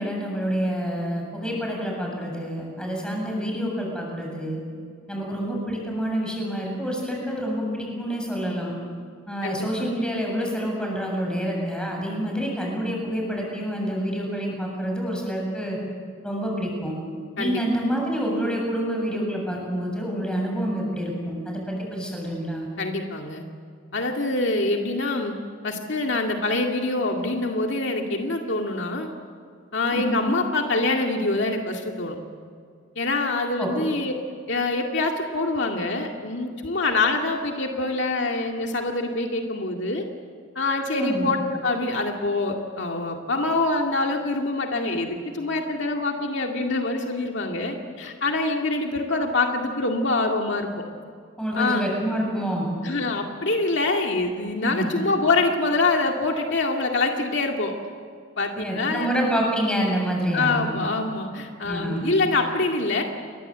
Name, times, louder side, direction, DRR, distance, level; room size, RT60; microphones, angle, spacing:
voice 1, 0.0-4.6 5.1-8.7 9.3-15.8 16.2-17.0 17.4-22.7 29.9-30.2 33.6-33.7 40.9-41.3 51.4-52.7 54.6-54.9 58.6-60.8 61.7-62.0, equal, 5° left, -1 dB, 7.5 m, -27 dB
voice 2, 9.4-9.9 17.4-17.5 22.8-23.4 23.9-25.3 25.6-29.1 29.7-32.2 33.0-34.1 34.5-40.0 40.6-50.7 51.6-51.8 52.8-57.7 58.4-59.1 60.3-63.0, left 2 dB, 60° left, 2 dB, 2.2 m, -25 dB
29.5 x 22.5 x 8.1 m, 2.2 s
head